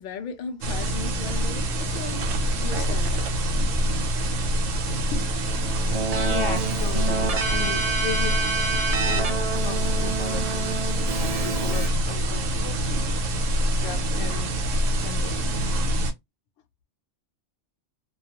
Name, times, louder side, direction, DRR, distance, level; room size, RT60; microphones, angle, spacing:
voice 1, 0.0-3.4, left 5 dB, 55° left, 0.5 m, -37 dB
sound 1, 0.6-16.1, equal, 90° right, 1.0 m, -25 dB
Keyboard (musical), 5.4-11.9, right 4 dB, 50° right, 0.4 m, -28 dB
voice 2, 6.2-8.4 9.1-10.9 11.2-13.2 13.8-14.6 14.9-15.7, left 6 dB, 80° left, 0.9 m, -36 dB
2.3 x 2.3 x 2.7 m
omnidirectional pair, 1.3 m